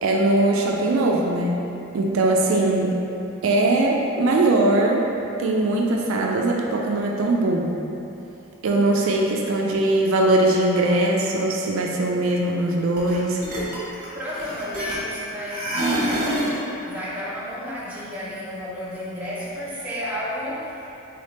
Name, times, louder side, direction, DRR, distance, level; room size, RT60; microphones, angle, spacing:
voice 1, 0.0-1.7 1.9-3.0 3.4-5.1 5.4-7.8 8.6-13.4, right 2 dB, 60° right, -1 dB, 0.4 m, -21 dB
sound 1, 13.0-13.1 13.4-15.2 15.5-16.6, right 1 dB, 40° right, 1.1 m, -26 dB
voice 2, 14.1-15.7 16.8-21.0, equal, 5° right, -9 dB, 0.7 m, -32 dB
3.9 x 3.4 x 4.1 m, 2.9 s
head